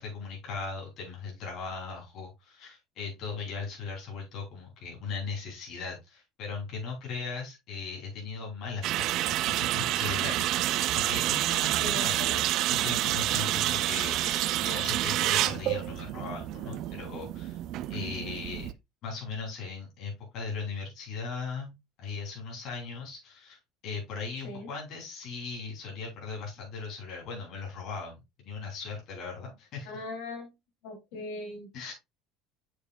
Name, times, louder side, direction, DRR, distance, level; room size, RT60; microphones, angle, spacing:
voice 1, 0.0-12.4 12.7-17.6 17.9-18.7 19.0-29.9 31.7-31.9, left 4 dB, 45° left, 3.2 m, -38 dB
sound 1, 8.8-18.7, right 14 dB, 45° right, 0.4 m, -28 dB
voice 2, 11.8-12.4 14.1-14.3 18.0-18.4 24.4-24.7 29.8-30.5 30.8-31.7, left 2 dB, 75° left, 2.8 m, -40 dB
7.0 x 6.3 x 2.3 m
cardioid pair, 175°, 0 cm